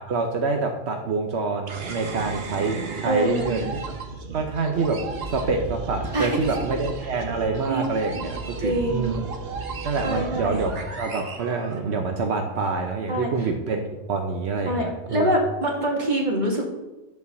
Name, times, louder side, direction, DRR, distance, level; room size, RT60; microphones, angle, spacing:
voice 1, 0.0-3.8 4.3-5.0 5.2-9.2 9.8-15.3, right 4 dB, 85° right, 3 dB, 1.2 m, -26 dB
sound 1, 1.7-12.3, right 4 dB, 65° right, 1.3 m, -34 dB
voice 2, 3.0-3.7 6.1-6.4 7.1-7.2 7.7-7.8 8.1-8.3 8.6-9.2 10.0-10.6 13.1-13.5 14.7-16.7, right 1 dB, 45° right, -1 dB, 2.2 m, -25 dB
11.0 x 4.6 x 6.9 m, 1.0 s
omnidirectional pair, 1.1 m